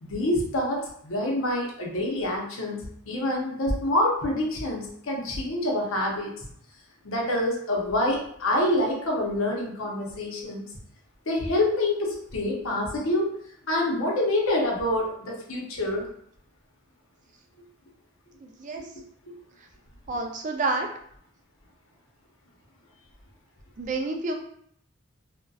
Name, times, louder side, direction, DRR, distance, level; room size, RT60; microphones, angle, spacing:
voice 1, 0.0-6.3 7.0-10.6 11.3-13.3 13.7-16.0, left 1 dB, 90° left, -2 dB, 0.7 m, -26 dB
voice 2, 18.4-18.9 20.1-20.9 23.8-24.3, right 3 dB, 40° right, 2 dB, 0.3 m, -29 dB
2.6 x 2.1 x 2.3 m, 0.66 s
head